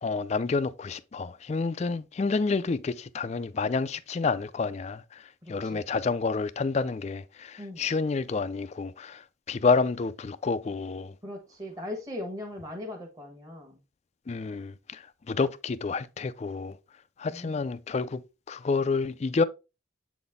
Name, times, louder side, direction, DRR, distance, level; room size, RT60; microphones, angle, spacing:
voice 1, 0.0-11.1 14.3-16.8 17.2-18.2 18.5-19.4, left 4 dB, 35° left, 0.3 m, -29 dB
voice 2, 5.4-5.8 7.6-7.9 11.2-13.8 17.3-17.6, left 1 dB, 15° right, 1.2 m, -39 dB
7.7 x 4.1 x 3.4 m
head